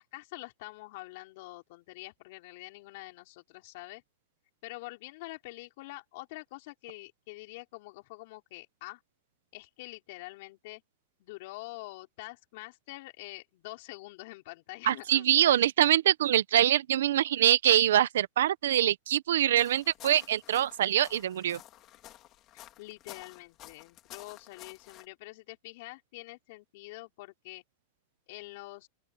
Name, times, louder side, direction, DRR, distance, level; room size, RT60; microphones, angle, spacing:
voice 1, 0.0-4.0 4.6-9.0 9.5-10.8 11.2-15.7 22.5-27.6 28.3-28.9, left 22 dB, 55° left, 5.2 m, -46 dB
voice 2, 14.9-21.6, right 11 dB, 85° right, 1.1 m, -24 dB
sound 1, 19.5-25.1, left 14 dB, 30° left, 4.2 m, -51 dB
open air
supercardioid pair, 155°, 0 cm